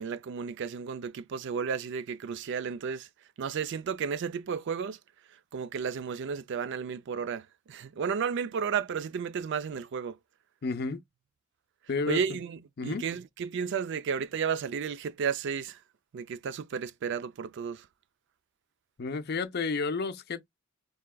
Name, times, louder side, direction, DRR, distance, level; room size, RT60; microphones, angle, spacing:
voice 1, 0.0-3.1 3.4-5.0 5.5-10.2 12.1-15.8 16.1-17.9, right 6 dB, 60° right, 0.4 m, -33 dB
voice 2, 10.6-11.0 11.9-12.4 12.8-13.0 19.0-20.5, left 4 dB, 50° left, 0.6 m, -31 dB
4.5 x 2.8 x 2.2 m
head